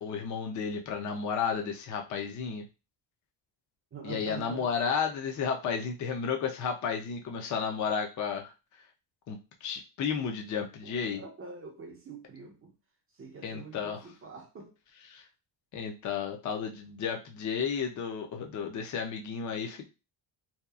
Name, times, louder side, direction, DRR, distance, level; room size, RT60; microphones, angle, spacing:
voice 1, 0.0-2.7 4.0-8.5 9.3-11.2 13.4-14.0 15.1-15.2 15.7-19.9, left 6 dB, 40° left, 0.5 m, -33 dB
voice 2, 3.9-4.7 10.8-12.8 13.1-14.7, right 4 dB, 30° right, 0.5 m, -45 dB
2.8 x 2.3 x 2.3 m
cardioid pair, 130°, 49 cm